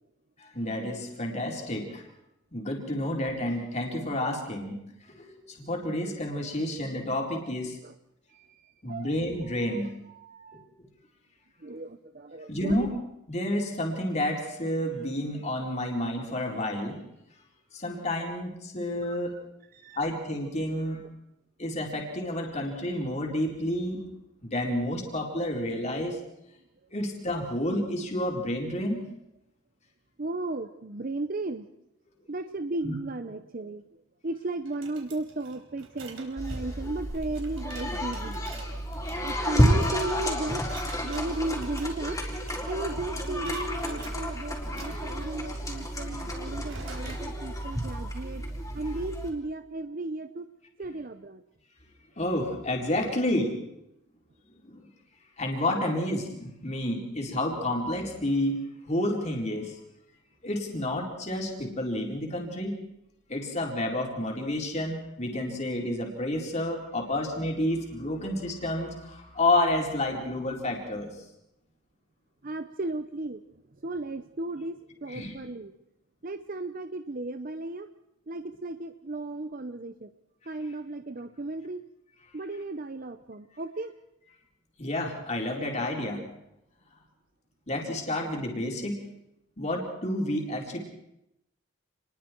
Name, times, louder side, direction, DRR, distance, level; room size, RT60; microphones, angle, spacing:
voice 1, 0.4-2.1 2.5-4.8 5.1-7.8 8.8-9.9 12.5-12.9 13.3-17.0 17.7-19.3 20.0-21.0 21.6-24.1 24.4-26.2 26.9-29.0 32.8-32.9 47.4-47.5 52.2-53.6 54.6-54.8 55.4-58.6 58.9-59.7 60.4-62.8 63.3-71.1 75.1-75.3 84.8-86.2 87.7-89.0 89.6-90.8, left 1 dB, 35° left, 0 dB, 4.2 m, -30 dB
voice 2, 8.3-9.1 9.6-9.8 10.1-10.7 11.6-12.9 19.1-19.4 19.7-20.1 30.2-31.7 32.3-33.8 34.2-38.4 39.2-40.6 41.0-42.2 42.7-48.4 48.7-50.5 50.8-51.4 55.8-56.0 72.4-73.4 73.8-75.7 76.2-77.9 78.3-80.1 80.5-81.8 82.3-83.9, right 2 dB, 45° right, 9 dB, 0.7 m, -35 dB
sound 1, 34.7-42.9 43.2-44.2 44.6-47.3, right 4 dB, 80° right, 4.2 m, -48 dB
sound 2, 36.4-49.3, equal, 15° left, 4.2 m, -30 dB
29.0 x 21.0 x 4.6 m, 0.84 s
head